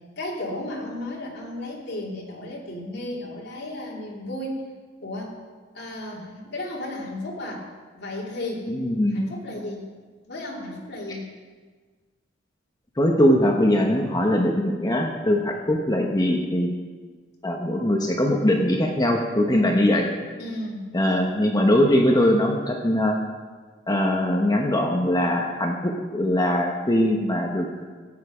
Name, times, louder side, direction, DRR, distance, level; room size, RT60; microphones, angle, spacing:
voice 1, 0.2-4.6 5.0-5.4 5.7-8.7 9.1-9.9 10.3-11.3 20.4-20.9, left 1 dB, 60° left, -3 dB, 3.0 m, -34 dB
voice 2, 8.7-9.3 13.0-16.7 17.4-20.1 20.9-23.2 23.9-27.7, left 1 dB, 20° left, 1 dB, 1.0 m, -21 dB
15.0 x 9.2 x 5.0 m, 1.4 s
head